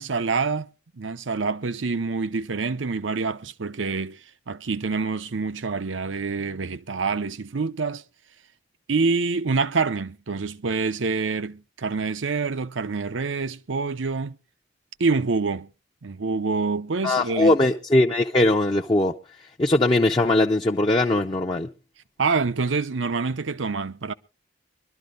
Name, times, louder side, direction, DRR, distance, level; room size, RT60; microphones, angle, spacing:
voice 1, 0.0-4.2 4.5-8.0 8.9-14.4 15.0-15.7 16.0-17.6 22.2-24.1, right 4 dB, 80° right, 0.7 m, -26 dB
voice 2, 17.0-19.1 19.6-21.7, left 2 dB, 25° left, 0.6 m, -20 dB
24.0 x 12.5 x 2.5 m
head